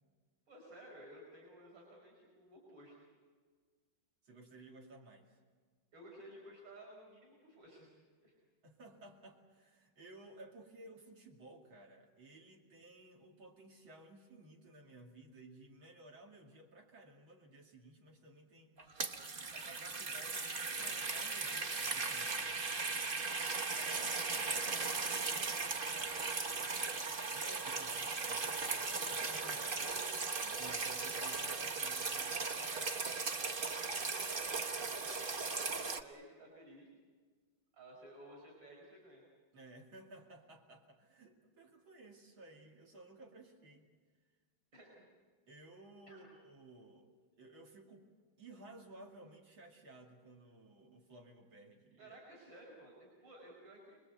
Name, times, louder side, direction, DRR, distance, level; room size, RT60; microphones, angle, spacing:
voice 1, 0.5-3.0 5.9-7.9 8.2-8.3 23.7-24.1 24.4-24.7 25.8-26.2 27.4-27.8 28.3-29.0 29.3-30.1 32.7-32.9 33.4-36.9 37.7-39.2 44.7-45.1 46.1-46.3 52.0-54.0, right 1 dB, 65° right, -2 dB, 5.7 m, -55 dB
voice 2, 4.2-5.4 8.6-19.0 19.5-22.5 27.3-29.6 30.4-32.9 39.5-43.9 45.5-47.1 47.4-48.1 48.4-52.2, right 2 dB, 85° right, 0 dB, 3.4 m, -56 dB
sound 1, 18.8-36.0, right 4 dB, 35° right, 0.9 m, -38 dB
29.5 x 21.0 x 8.0 m, 1.5 s
omnidirectional pair, 2.2 m